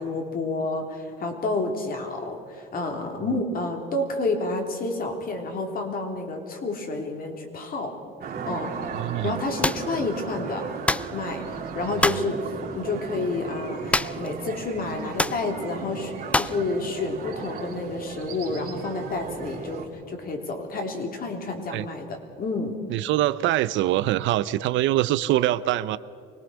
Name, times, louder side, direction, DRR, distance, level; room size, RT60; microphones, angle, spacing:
voice 1, 0.0-7.9 8.4-8.7 9.2-10.6 11.1-22.8, left 3 dB, 45° left, 3 dB, 3.4 m, -30 dB
sound 1, 8.2-19.8, right 5 dB, 50° right, 3.1 m, -36 dB
voice 2, 8.9-9.4 21.7-21.9 22.9-26.0, right 14 dB, 70° right, 16 dB, 0.7 m, -24 dB
sound 2, 9.6-9.9 10.9-11.1 12.0-12.3 13.9-14.3 14.6-14.7 15.2-15.4 16.3-16.6, left 2 dB, 5° left, 0.4 m, -24 dB
24.5 x 18.5 x 6.3 m, 2.4 s
cardioid pair, 100°, 20 cm